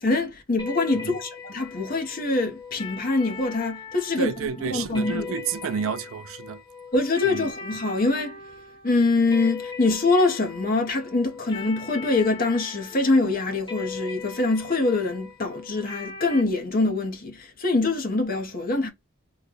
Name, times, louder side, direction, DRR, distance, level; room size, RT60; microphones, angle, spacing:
voice 1, 0.0-5.3 6.9-8.4 8.8-18.9, left 3 dB, 40° left, 0.8 m, -24 dB
sound 1, 0.6-16.4, left 5 dB, 20° left, 1.1 m, -40 dB
voice 2, 4.2-6.6 7.3-7.4, right 6 dB, 75° right, 0.4 m, -30 dB
3.1 x 2.2 x 3.7 m
head